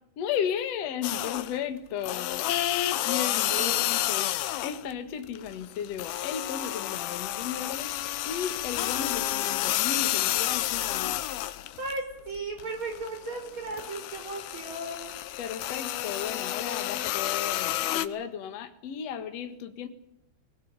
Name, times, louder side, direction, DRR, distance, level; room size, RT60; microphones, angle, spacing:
voice 1, 0.2-2.5 3.1-4.3 4.6-8.0 8.2-11.2 15.4-19.9, left 8 dB, 55° left, 2.0 m, -34 dB
sound 1, 1.0-1.6 2.0-4.9 5.2-12.0 12.4-18.1, left 13 dB, 75° left, 2.5 m, -30 dB
voice 2, 3.5-4.1 11.8-15.1, right 3 dB, 30° right, 5.3 m, -36 dB
21.0 x 20.0 x 8.9 m
omnidirectional pair, 5.3 m